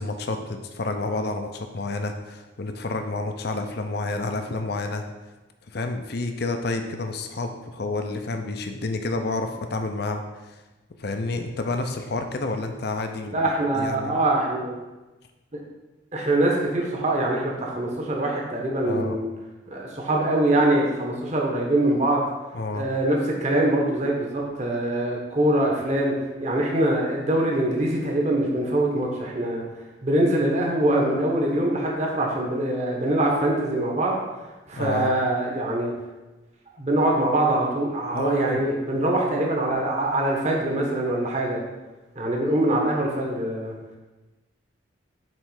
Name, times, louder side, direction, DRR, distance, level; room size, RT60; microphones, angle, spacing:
voice 1, 0.0-5.0 5.7-10.6 11.0-14.2 18.8-19.2 22.5-22.9 34.8-35.1 38.1-38.7, left 2 dB, 55° left, 5 dB, 0.6 m, -29 dB
voice 2, 13.3-14.8 16.1-19.3 19.7-22.3 22.7-26.1 26.4-29.6 30.0-34.2 34.7-35.9 36.8-41.6 42.1-43.8, right 1 dB, 35° right, -1 dB, 1.1 m, -23 dB
7.5 x 3.2 x 4.8 m, 1.1 s
head